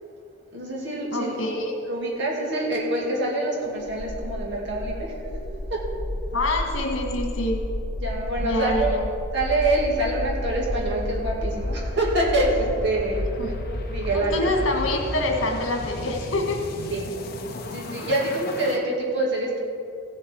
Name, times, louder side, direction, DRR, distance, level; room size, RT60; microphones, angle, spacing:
voice 1, 0.5-1.3 1.9-5.1 5.7-5.8 8.0-9.0 9.3-13.2 13.7-14.5 16.9-17.1 17.7-19.6, right 2 dB, 60° right, -3 dB, 2.5 m, -26 dB
voice 2, 1.1-1.7 6.3-7.6 8.4-9.1 13.4-13.6 14.1-16.6, left 1 dB, 75° left, 1 dB, 1.8 m, -26 dB
sound 1, 3.8-18.8, left 1 dB, 50° left, 0.9 m, -32 dB
16.0 x 7.3 x 4.7 m, 2.4 s
head